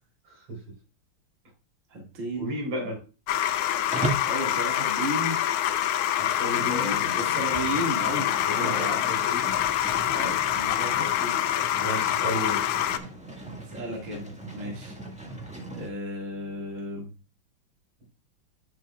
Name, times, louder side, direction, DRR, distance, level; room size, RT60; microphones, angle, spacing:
voice 1, 0.2-0.6 2.3-3.0 6.2-7.2 7.6-7.7 8.5-9.6 11.8-12.7, left 1 dB, 80° right, -1 dB, 5.0 m, -34 dB
voice 2, 1.9-2.5 4.3-5.4 6.6-9.1 10.1-11.4 13.7-14.3 14.5-14.9 15.7-17.1, right 1 dB, 40° right, 0 dB, 2.2 m, -34 dB
sound 1, 3.3-13.0, left 12 dB, 90° left, 1.5 m, -26 dB
Livestock farm animals working animals, 3.9-4.4 6.1-15.9, right 2 dB, 5° right, 1.3 m, -38 dB
11.0 x 5.9 x 2.3 m, 0.33 s
omnidirectional pair, 2.3 m